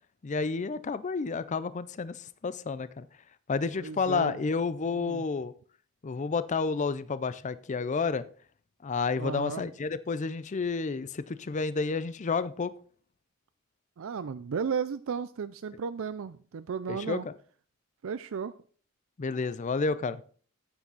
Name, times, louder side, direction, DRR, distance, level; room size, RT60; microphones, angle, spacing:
voice 1, 0.2-3.1 3.5-5.5 6.0-8.2 8.8-12.7 16.9-17.3 19.2-20.2, left 4 dB, 35° left, 15 dB, 0.5 m, -30 dB
voice 2, 3.7-4.4 4.9-5.2 9.2-9.7 14.0-17.3 18.0-18.5, right 6 dB, 70° right, 14 dB, 0.4 m, -34 dB
9.6 x 8.6 x 4.0 m, 0.44 s
head